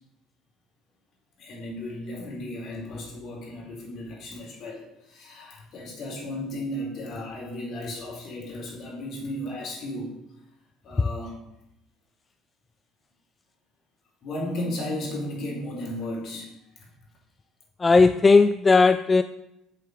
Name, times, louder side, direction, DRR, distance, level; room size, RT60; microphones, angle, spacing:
voice 1, 1.4-10.2 10.8-11.3 14.2-16.9, left 1 dB, 45° left, 4.3 m, -35 dB
voice 2, 17.8-19.2, left 4 dB, 15° left, 0.3 m, -17 dB
8.5 x 6.8 x 6.9 m
cardioid pair, 145°, 0 cm